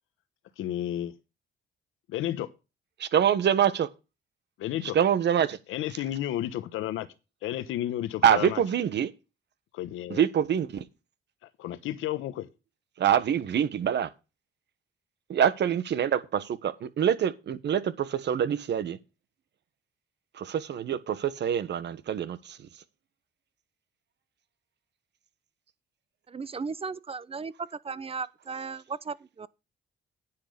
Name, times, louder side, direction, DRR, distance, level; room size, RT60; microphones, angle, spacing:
voice 1, 0.6-1.1 2.1-2.5 4.6-5.0 5.7-7.1 7.4-8.6 9.7-10.2 11.4-12.5, left 12 dB, 90° left, 1.0 m, -32 dB
voice 2, 3.0-3.9 4.9-5.6 8.2-9.1 10.1-10.8 13.0-14.1 15.3-19.0 20.3-22.7, right 9 dB, 60° right, 1.3 m, -25 dB
voice 3, 26.3-29.5, right 5 dB, 30° right, 0.8 m, -36 dB
9.9 x 6.0 x 6.7 m
cardioid pair, 90°, 20 cm